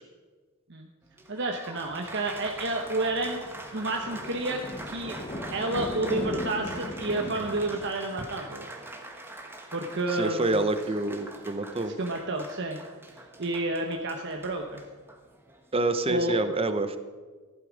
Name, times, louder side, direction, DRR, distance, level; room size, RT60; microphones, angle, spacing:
Applause, 1.0-15.7, right 2 dB, 10° right, 1.2 m, -44 dB
voice 1, 1.3-3.4 3.7-4.6 4.9-5.2 5.5-8.7 9.7-10.7 12.0-12.8 13.4-14.8 16.1-16.4, right 2 dB, 55° right, 3 dB, 1.0 m, -30 dB
sound 1, 1.9-7.9, left 1 dB, 25° left, 1.0 m, -38 dB
voice 2, 10.1-11.9 15.7-17.0, right 2 dB, 25° right, 10 dB, 0.8 m, -27 dB
15.0 x 11.5 x 5.2 m, 1.4 s
head